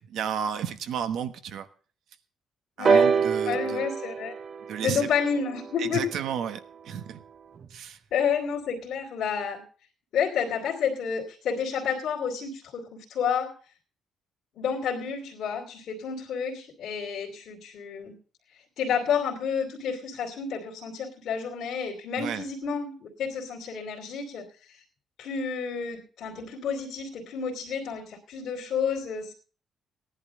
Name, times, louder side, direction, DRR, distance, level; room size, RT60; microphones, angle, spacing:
voice 1, 0.0-1.7 2.8-3.8 4.7-5.1 5.8-7.2 7.7-8.0 22.2-22.4, right 8 dB, 75° right, 9 dB, 1.1 m, -32 dB
voice 2, 2.8-3.1 3.5-4.3 4.8-6.1 8.1-9.6 10.1-13.6 14.6-18.2 18.8-24.8 25.2-29.3, left 7 dB, 75° left, -4 dB, 2.6 m, -30 dB
sound 1, 2.8-6.7 7.6-7.7, right 5 dB, 50° right, 0.8 m, -26 dB
16.5 x 10.5 x 3.7 m, 0.40 s
cardioid pair, 90°, 0 cm